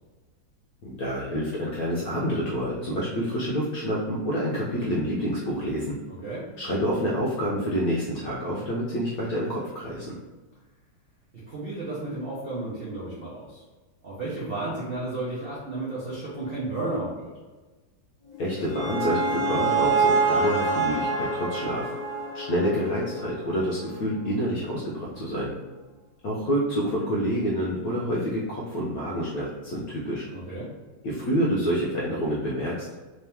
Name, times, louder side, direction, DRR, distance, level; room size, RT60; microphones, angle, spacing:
voice 1, 0.8-5.9 6.6-10.2 18.4-21.9 22.3-25.5 26.2-30.3 31.0-32.9, equal, 70° left, -5 dB, 0.9 m, -28 dB
voice 2, 11.5-13.6 14.0-17.3 30.3-30.7, right 2 dB, 65° right, -8 dB, 0.5 m, -33 dB
sound 1, 18.3-23.5, right 3 dB, 50° left, 1.3 m, -26 dB
3.5 x 2.9 x 3.4 m, 1.3 s
omnidirectional pair, 2.3 m